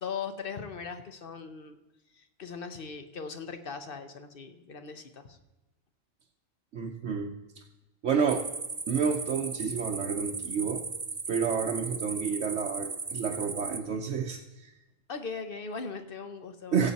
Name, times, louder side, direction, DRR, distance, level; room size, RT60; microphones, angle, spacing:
voice 1, 0.0-1.8 2.2-5.4 15.1-16.9, left 5 dB, 50° left, 8 dB, 0.9 m, -39 dB
voice 2, 6.7-7.3 8.0-8.5 8.9-10.9 11.3-14.7 16.7-16.9, right 6 dB, 65° right, 0 dB, 1.1 m, -30 dB
sound 1, 8.3-13.8, right 4 dB, 35° right, 0.4 m, -37 dB
16.0 x 7.6 x 4.1 m, 1.0 s
omnidirectional pair, 1.4 m